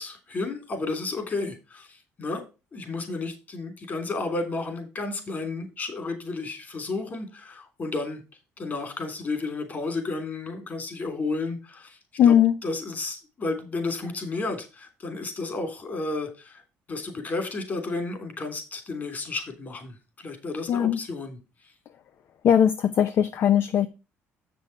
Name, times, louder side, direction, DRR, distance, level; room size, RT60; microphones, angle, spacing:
voice 1, 0.0-2.4 2.7-8.2 8.6-12.0 12.2-12.4 12.6-16.6 16.9-21.4, left 3 dB, 35° left, 3.1 m, -32 dB
voice 2, 12.2-12.5 20.7-21.0 22.4-23.9, left 9 dB, 55° left, 0.6 m, -19 dB
7.7 x 6.3 x 4.6 m
cardioid pair, 120°, 5 cm